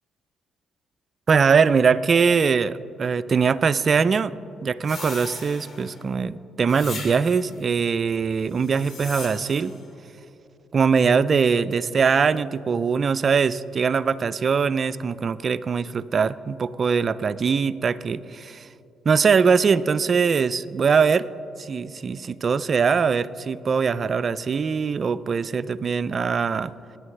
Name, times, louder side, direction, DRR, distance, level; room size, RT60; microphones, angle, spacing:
voice 1, 1.3-4.3 4.6-9.7 10.7-18.6 19.1-21.2 21.6-26.7, right 5 dB, 45° right, 15 dB, 0.3 m, -22 dB
sound 1, 4.8-6.0 6.7-7.6 8.5-9.8, left 3 dB, 55° left, 2.2 m, -38 dB
19.5 x 9.6 x 3.3 m, 2.9 s
cardioid pair, 90°, 0 cm